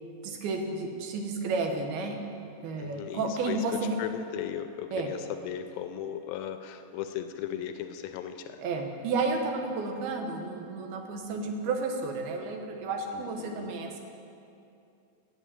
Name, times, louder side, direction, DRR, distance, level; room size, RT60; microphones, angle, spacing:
voice 1, 0.2-2.2 2.6-4.0 4.9-5.1 8.6-14.0, right 3 dB, 90° right, 3 dB, 3.1 m, -32 dB
voice 2, 2.8-8.6 13.1-13.7, left 10 dB, 80° left, 8 dB, 2.1 m, -37 dB
11.0 x 8.6 x 8.3 m, 2.7 s
omnidirectional pair, 4.3 m